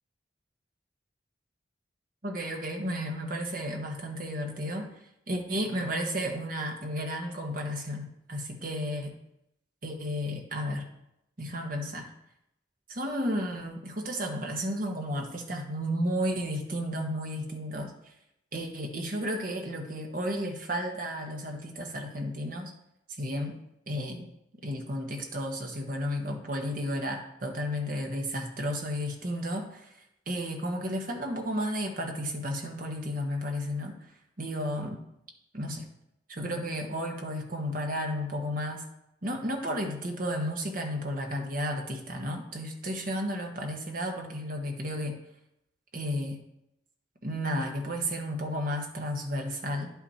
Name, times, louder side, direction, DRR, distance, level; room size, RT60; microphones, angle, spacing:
voice 1, 2.2-4.9 5.3-9.2 9.8-10.9 11.4-12.1 12.9-18.1 18.5-22.7 23.2-23.6 23.9-24.3 24.6-29.9 30.3-34.0 34.4-35.0 35.5-35.9 36.3-38.9 39.2-45.2 45.9-46.4 47.2-49.9, equal, 45° right, 2 dB, 1.3 m, -33 dB
10.5 x 5.9 x 4.3 m, 0.82 s
head